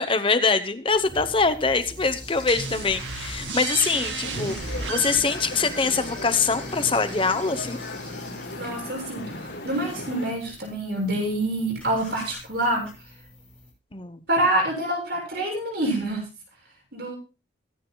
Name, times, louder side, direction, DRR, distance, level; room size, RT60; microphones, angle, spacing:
voice 1, 0.0-7.8 13.9-14.2, left 4 dB, 30° left, 10 dB, 0.9 m, -24 dB
sound 1, 0.9-13.7, left 1 dB, 5° left, 6.7 m, -42 dB
sound 2, 2.5-7.9, right 4 dB, 90° right, 2.1 m, -35 dB
sound 3, 4.2-10.3, left 2 dB, 65° left, 4.8 m, -37 dB
voice 2, 8.6-12.9 14.3-16.3 16.9-17.2, right 1 dB, 60° right, 0 dB, 7.3 m, -26 dB
23.5 x 10.0 x 2.3 m, 0.29 s
head